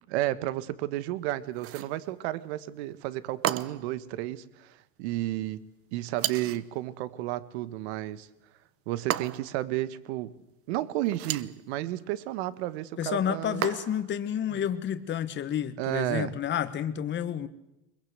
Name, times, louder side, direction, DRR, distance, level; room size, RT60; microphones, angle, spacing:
voice 1, 0.1-5.6 5.9-8.3 8.9-10.4 10.7-13.6 15.8-16.3, right 15 dB, 70° right, 16 dB, 1.4 m, -32 dB
sound 1, 1.6-2.0 3.4-4.0 6.2-6.7 9.1-9.6 11.1-11.6 13.6-14.1, right 12 dB, 40° right, 1.0 m, -33 dB
voice 2, 13.0-17.5, left 9 dB, 35° left, 10 dB, 1.4 m, -30 dB
21.5 x 21.5 x 8.1 m, 0.91 s
supercardioid pair, 105°, 33 cm